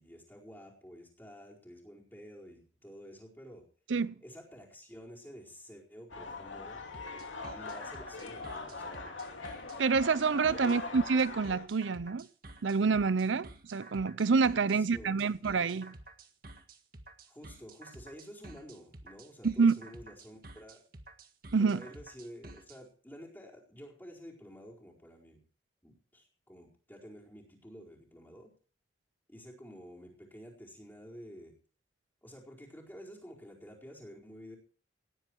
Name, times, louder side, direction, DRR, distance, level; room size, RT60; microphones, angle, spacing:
voice 1, 0.0-3.6 4.2-6.8 7.5-9.1 10.4-10.8 14.5-15.2 17.3-20.8 21.6-25.4 25.8-28.5 29.3-31.5 32.2-34.6, equal, 10° left, 4.5 m, -50 dB
sound 1, 6.1-11.7, left 3 dB, 90° left, 2.8 m, -42 dB
sound 2, 6.9-22.8, right 2 dB, 50° right, 1.7 m, -51 dB
voice 2, 9.8-12.3 12.6-16.0 19.4-19.7 21.5-21.8, right 5 dB, 85° right, 0.6 m, -27 dB
18.0 x 12.0 x 4.6 m
head